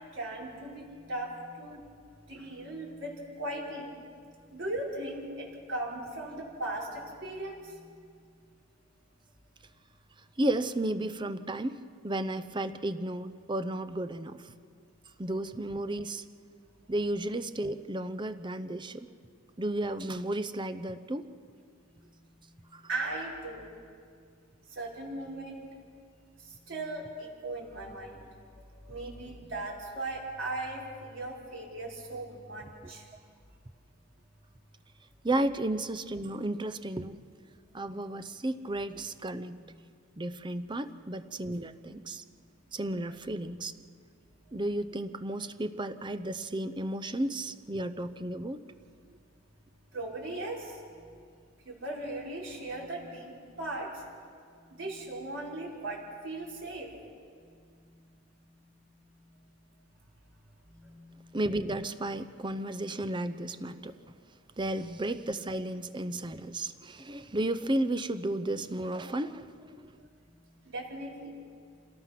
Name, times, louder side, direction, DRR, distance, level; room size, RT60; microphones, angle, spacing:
voice 1, 0.1-1.8 2.3-4.0 4.5-7.8 22.9-23.7 24.7-25.7 26.4-28.3 28.5-33.1 49.9-50.8 51.7-54.0 54.7-56.9 60.7-61.3 70.7-71.3, right 2 dB, 65° right, -3 dB, 5.2 m, -38 dB
voice 2, 10.4-11.8 12.0-14.5 15.2-16.2 16.9-19.1 19.6-21.3 22.7-22.8 27.4-27.5 35.2-37.2 37.7-39.6 40.2-42.2 42.7-43.7 44.5-48.6 61.3-63.9 64.6-69.9, right 1 dB, 20° right, 11 dB, 0.6 m, -33 dB
28.0 x 18.5 x 5.9 m, 2.2 s
head